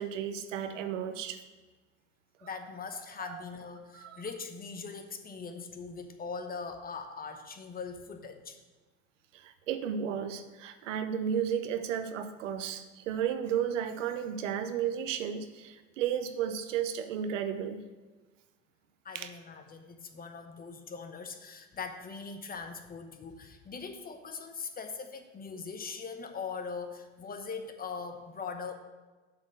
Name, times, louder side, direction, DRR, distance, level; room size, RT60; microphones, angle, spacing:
voice 1, 0.0-1.4 3.2-3.4 3.9-4.2 9.3-17.8 19.1-19.3, right 8 dB, 80° right, 9 dB, 0.7 m, -33 dB
voice 2, 2.4-8.6 19.0-28.7, left 5 dB, 25° left, 7 dB, 0.9 m, -41 dB
7.3 x 4.4 x 6.3 m, 1.3 s
hypercardioid pair, 80°, 37 cm